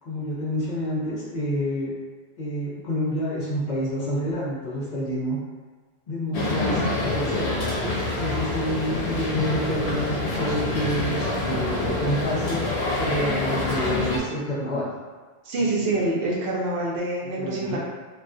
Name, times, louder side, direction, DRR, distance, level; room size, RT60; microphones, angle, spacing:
voice 1, 0.0-1.9 2.4-5.4 6.1-7.7 8.2-12.6 12.9-14.9 15.6-16.0 17.2-17.8, equal, 55° left, -7 dB, 0.7 m, -28 dB
sound 1, 6.3-14.2, left 2 dB, 80° left, 0.8 m, -26 dB
voice 2, 15.4-17.8, right 2 dB, 70° right, -3 dB, 0.8 m, -26 dB
2.5 x 2.3 x 2.2 m, 1.4 s
omnidirectional pair, 1.1 m